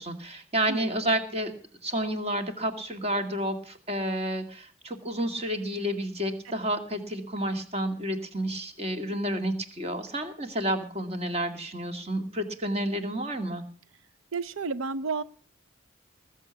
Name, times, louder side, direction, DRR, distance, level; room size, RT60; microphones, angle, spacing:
voice 1, 0.0-1.5 1.8-13.6, right 1 dB, 30° right, 6 dB, 2.3 m, -30 dB
voice 2, 14.3-15.2, right 4 dB, 75° right, 15 dB, 0.6 m, -31 dB
20.0 x 7.8 x 7.2 m, 0.44 s
head